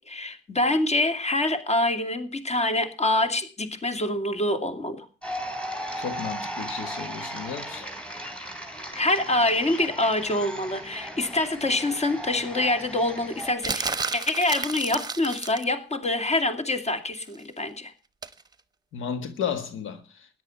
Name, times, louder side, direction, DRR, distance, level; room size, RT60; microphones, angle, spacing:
voice 1, 0.1-5.1 8.9-17.9, left 2 dB, 35° left, 2.5 m, -26 dB
sound 1, 5.2-13.5, equal, 5° left, 4.2 m, -36 dB
voice 2, 5.9-7.9 18.9-20.4, left 7 dB, 80° left, 1.6 m, -33 dB
sound 2, 13.6-15.7 18.2-18.4, right 4 dB, 20° right, 1.0 m, -31 dB
14.0 x 10.5 x 7.1 m
cardioid pair, 90°, 20 cm